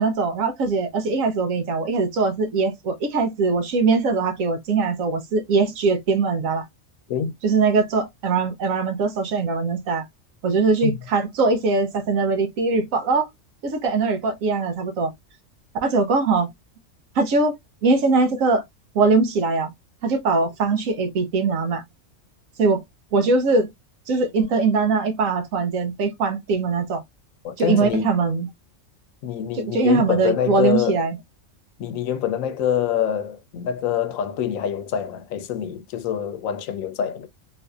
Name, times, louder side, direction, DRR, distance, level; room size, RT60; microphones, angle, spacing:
voice 1, 0.0-6.6 7.4-10.1 10.4-13.3 13.6-15.1 15.8-16.5 17.1-17.5 17.8-18.6 18.9-19.7 20.0-21.8 22.6-22.8 23.1-23.7 24.1-27.0 27.6-28.5 29.7-31.2, right 4 dB, 85° right, 1.2 m, -21 dB
voice 2, 27.4-28.1 29.2-31.0 31.8-37.3, left 9 dB, 85° left, 1.0 m, -25 dB
3.9 x 2.6 x 2.3 m
omnidirectional pair, 1.3 m